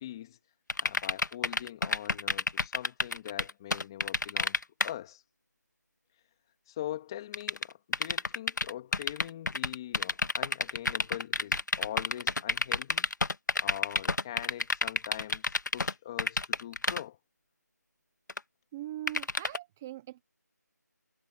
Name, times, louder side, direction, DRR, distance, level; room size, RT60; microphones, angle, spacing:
voice 1, 0.0-0.4 0.8-5.2 6.7-13.1 13.6-17.2, left 12 dB, 15° left, 2.2 m, -42 dB
sound 1, 0.7-4.9 7.3-15.9 16.2-17.0 18.3-18.4 19.1-19.6, left 3 dB, 80° left, 1.6 m, -29 dB
voice 2, 18.7-20.2, right 14 dB, 5° right, 0.6 m, -41 dB
figure-of-eight pair, 175°, 10 cm